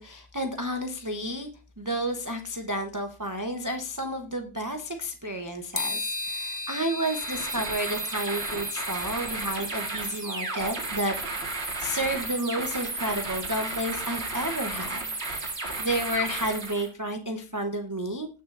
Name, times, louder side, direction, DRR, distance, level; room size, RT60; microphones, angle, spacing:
voice 1, 0.0-1.5 1.8-11.1 11.6-18.3, right 1 dB, 20° right, 4 dB, 0.5 m, -31 dB
sound 1, 5.7-11.0, left 2 dB, 40° left, 0.5 m, -36 dB
sound 2, 7.0-16.9, right 3 dB, 40° right, 2.1 m, -33 dB
19.5 x 6.6 x 2.5 m, 0.34 s
omnidirectional pair, 1.8 m